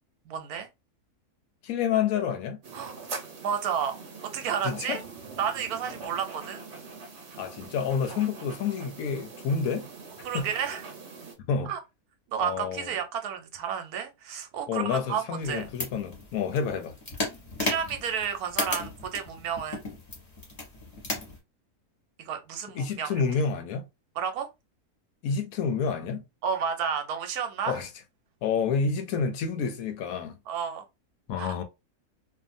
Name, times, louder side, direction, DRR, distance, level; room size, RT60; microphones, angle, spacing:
voice 1, 0.3-0.7 2.7-2.9 3.4-5.0 5.4-6.6 8.1-8.2 10.2-10.8 11.7-11.8 12.3-15.6 17.6-19.9 22.2-23.2 24.2-24.5 26.4-27.8 30.5-30.8 31.4-31.6, right 7 dB, 80° right, 1.2 m, -31 dB
voice 2, 1.6-2.6 4.6-5.0 7.4-9.9 10.3-10.4 11.5-11.7 12.4-13.0 14.7-16.9 22.7-23.8 25.2-26.2 27.7-27.9 28.4-30.4 31.3-31.6, left 6 dB, 70° left, 1.0 m, -29 dB
sound 1, 2.6-11.3, right 4 dB, 55° right, 1.0 m, -43 dB
sound 2, 15.4-21.4, left 2 dB, 25° left, 1.1 m, -35 dB
2.7 x 2.4 x 2.5 m
omnidirectional pair, 1.6 m